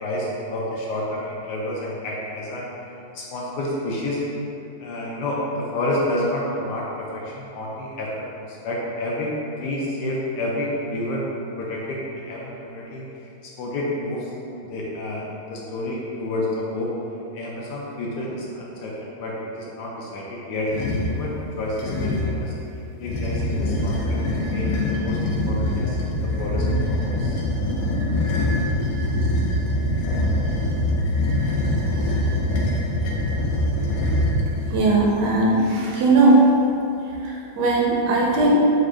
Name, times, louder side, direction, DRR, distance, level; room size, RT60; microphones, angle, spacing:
voice 1, 0.0-2.6 3.1-4.2 4.8-11.2 11.6-13.3 13.6-14.3 14.6-16.9 17.3-20.7 21.0-22.5 23.0-27.4, left 1 dB, 70° left, -4 dB, 1.1 m, -29 dB
sound 1, 20.7-21.2 21.8-22.4 23.0-35.0, left 1 dB, 90° left, 0.7 m, -23 dB
voice 2, 34.7-36.4 37.2-38.6, right 2 dB, 75° right, -3 dB, 1.1 m, -18 dB
4.4 x 2.5 x 3.2 m, 2.8 s
omnidirectional pair, 2.0 m